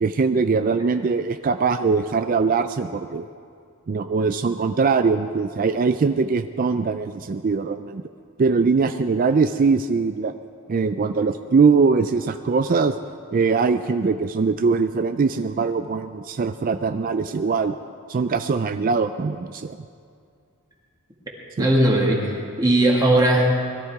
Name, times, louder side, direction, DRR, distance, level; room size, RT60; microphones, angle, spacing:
voice 1, 0.0-3.3 3.9-8.0 8.4-10.3 10.7-12.9 13.3-17.7 18.1-19.8 21.6-21.7, right 4 dB, 40° right, 9 dB, 0.4 m, -21 dB
voice 2, 21.6-23.5, right 1 dB, 20° right, -3 dB, 2.0 m, -18 dB
21.0 x 13.0 x 4.7 m, 2.3 s
head